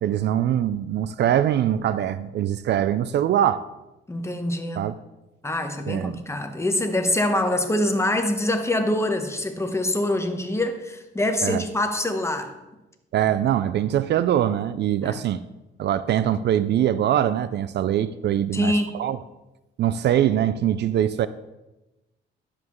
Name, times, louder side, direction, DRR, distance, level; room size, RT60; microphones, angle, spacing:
voice 1, 0.0-3.6 4.8-4.9 5.9-6.2 11.4-11.6 13.1-15.4 15.8-19.2 19.8-21.3, right 11 dB, 60° right, 15 dB, 0.4 m, -23 dB
voice 2, 4.1-4.9 5.4-12.5 15.0-15.2 18.5-19.0, left 1 dB, 15° left, 6 dB, 1.1 m, -25 dB
10.5 x 7.3 x 3.1 m, 1.0 s
cardioid pair, 90°, 20 cm